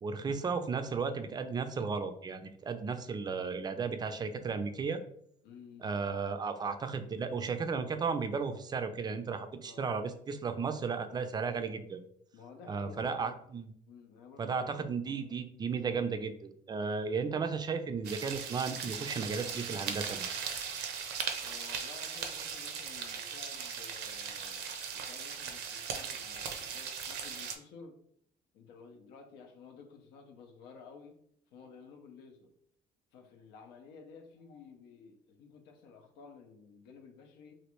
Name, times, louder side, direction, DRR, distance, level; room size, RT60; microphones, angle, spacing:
voice 1, 0.0-5.0 5.8-12.0 12.7-13.7 14.4-20.3, right 5 dB, 25° right, 8 dB, 0.3 m, -34 dB
voice 2, 5.4-6.0 9.6-10.0 12.3-13.4 13.9-14.9 21.4-28.0 28.5-31.2 31.5-32.5 33.1-37.5, left 5 dB, 90° left, 4 dB, 0.6 m, -53 dB
sound 1, 18.0-27.6, right 6 dB, 75° right, 0.5 m, -38 dB
sound 2, 21.5-26.5, left 4 dB, 50° left, 0.8 m, -59 dB
3.1 x 2.5 x 3.0 m, 0.67 s
cardioid pair, 110°, 17 cm